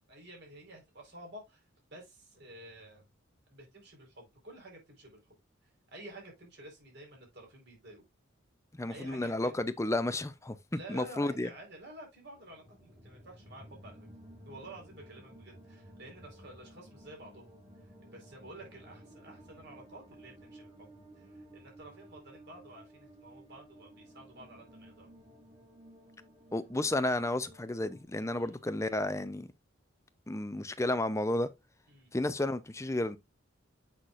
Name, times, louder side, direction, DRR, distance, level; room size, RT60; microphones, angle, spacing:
voice 1, 0.1-1.6 1.9-3.0 3.5-5.2 5.6-8.0 8.9-9.6 10.7-14.1 14.4-17.5 18.1-20.9 21.1-25.2 28.4-28.5 31.9-32.1, right 1 dB, 60° right, 4.4 m, -51 dB
voice 2, 8.8-11.5 26.5-29.5 30.3-31.5 32.1-33.2, left 1 dB, 15° left, 0.6 m, -32 dB
sound 1, 12.3-28.0, right 1 dB, 20° right, 2.3 m, -55 dB
8.2 x 5.9 x 2.5 m
head